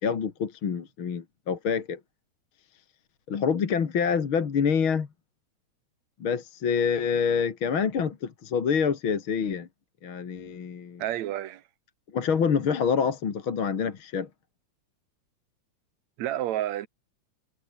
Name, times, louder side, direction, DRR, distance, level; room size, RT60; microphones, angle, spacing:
voice 1, 0.0-2.0 3.3-5.1 6.2-9.7 10.0-11.0 12.1-14.3, left 6 dB, 45° left, 2.7 m, -26 dB
voice 2, 11.0-11.6 16.2-16.9, right 13 dB, 75° right, 2.3 m, -30 dB
omnidirectional pair, 3.3 m